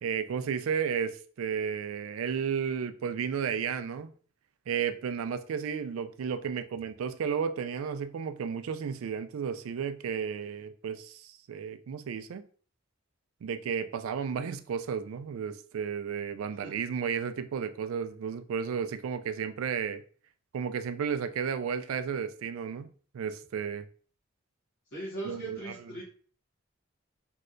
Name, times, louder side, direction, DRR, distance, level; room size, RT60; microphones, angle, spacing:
voice 1, 0.0-4.1 4.7-12.4 13.4-20.0 20.5-23.9 25.2-25.9, right 7 dB, 80° right, 0.3 m, -33 dB
voice 2, 24.9-26.0, right 1 dB, 65° left, 1.3 m, -39 dB
3.2 x 2.7 x 2.5 m
head